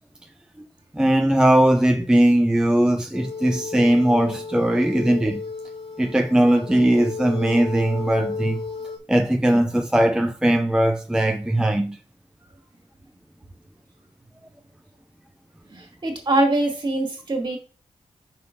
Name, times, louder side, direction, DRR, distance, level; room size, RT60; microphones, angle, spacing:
voice 1, 0.9-5.4 6.0-8.6 9.1-12.0, right 1 dB, 5° right, 0.5 m, -19 dB
sound 1, 3.1-9.0, left 4 dB, 55° left, 1.7 m, -34 dB
voice 2, 15.7-17.6, right 2 dB, 40° right, 2.0 m, -23 dB
5.8 x 3.9 x 5.1 m
cardioid pair, 85°, 12 cm